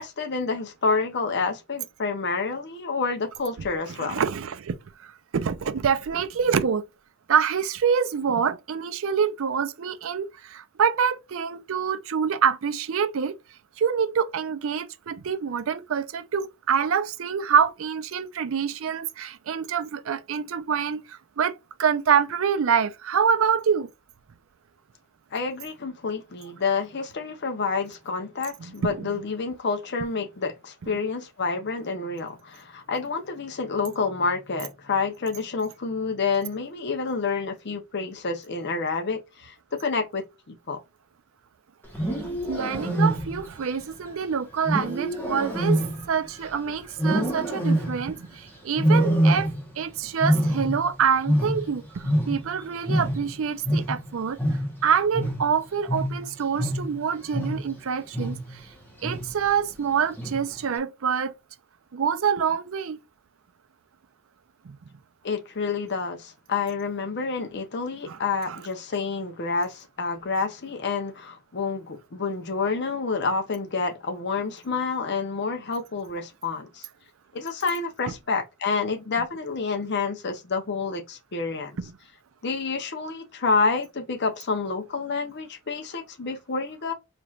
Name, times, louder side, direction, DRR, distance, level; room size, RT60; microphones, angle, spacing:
voice 1, 0.0-4.2 25.3-40.8 65.2-76.9 77.3-81.8 82.4-86.9, left 4 dB, 50° left, 0.7 m, -28 dB
voice 2, 4.0-4.8 5.0-6.8 7.3-13.4 13.8-23.9 28.6-29.1 42.5-45.8 46.1-49.5 49.8-54.4 54.8-58.4 59.0-61.3 61.9-63.0 64.6-64.8 68.1-68.2 68.5-68.6 81.8-81.9, right 7 dB, 60° right, 0.4 m, -26 dB
Wild animals, 41.8-43.6 44.6-46.5 47.0-48.2 48.8-49.8 50.1-52.6 52.9-57.8 58.1-58.6 59.0-59.5 60.2-60.6, right 1 dB, 10° left, 1.0 m, -25 dB
4.1 x 3.1 x 2.3 m
head